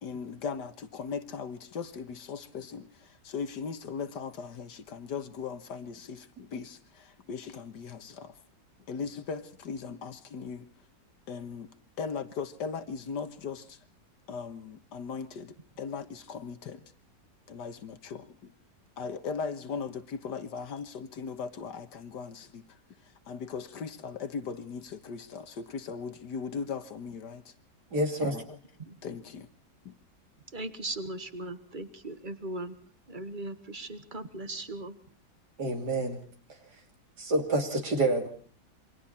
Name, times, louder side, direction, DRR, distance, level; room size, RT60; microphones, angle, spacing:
voice 1, 0.0-8.3 8.9-10.7 11.3-11.7 12.0-13.8 14.3-16.8 17.5-18.5 19.0-22.6 23.3-27.5 28.2-28.6 29.0-29.5 29.9-30.0, left 5 dB, 75° left, 1.9 m, -38 dB
voice 2, 27.9-28.4 35.6-36.2 37.2-38.3, right 2 dB, 70° right, 3.5 m, -27 dB
voice 3, 30.5-32.8 33.1-35.0, right 2 dB, 30° right, 1.6 m, -38 dB
28.0 x 23.5 x 4.3 m
omnidirectional pair, 1.8 m